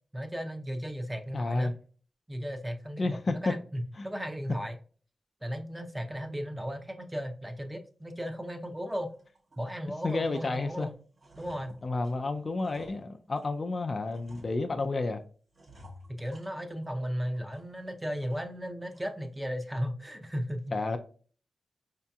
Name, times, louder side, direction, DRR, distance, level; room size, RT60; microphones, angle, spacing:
voice 1, 0.1-1.7 2.3-4.8 5.4-9.1 9.6-10.9 11.4-11.8 16.1-20.8, equal, 10° right, 0.6 m, -35 dB
voice 2, 1.3-1.7 3.0-3.5 4.0-4.1 10.0-10.9 11.8-15.2 20.7-21.0, left 3 dB, 40° left, 0.4 m, -31 dB
sound 1, 7.6-7.7 8.2-8.3 8.8-9.7 10.0-10.7 11.0-13.6 14.1-15.0 15.5-17.0 17.3-18.0 18.3-18.4 18.9-19.3, equal, 45° right, 0.9 m, -55 dB
4.8 x 2.8 x 2.3 m
wide cardioid pair, 95°, 0 cm